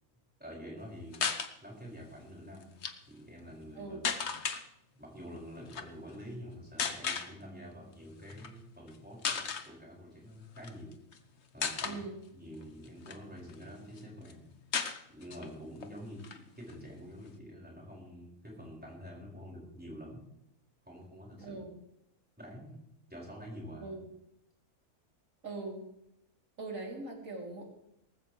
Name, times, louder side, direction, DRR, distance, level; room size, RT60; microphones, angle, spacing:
voice 1, 0.4-1.3 1.6-2.8 3.1-4.5 5.0-10.9 11.5-14.5 15.1-20.3 20.9-21.6 22.4-22.8 23.1-24.0, equal, 5° right, -3 dB, 5.5 m, -47 dB
sound 1, 1.1-1.5 2.6-2.9 4.0-4.6 5.7-5.9 6.8-7.3 8.3-8.5 8.9-9.0 9.2-9.7 10.6-11.2 11.6-12.0 12.6-13.6 14.0-14.1 14.3-14.4 14.7-15.5 15.8-15.9 16.2-17.3, left 6 dB, 50° left, 1.3 m, -35 dB
voice 2, 11.8-12.2 21.4-21.7 23.8-24.1 25.4-25.8 26.6-27.6, right 3 dB, 65° right, -1 dB, 3.7 m, -41 dB
18.5 x 15.0 x 3.3 m, 0.83 s
omnidirectional pair, 1.5 m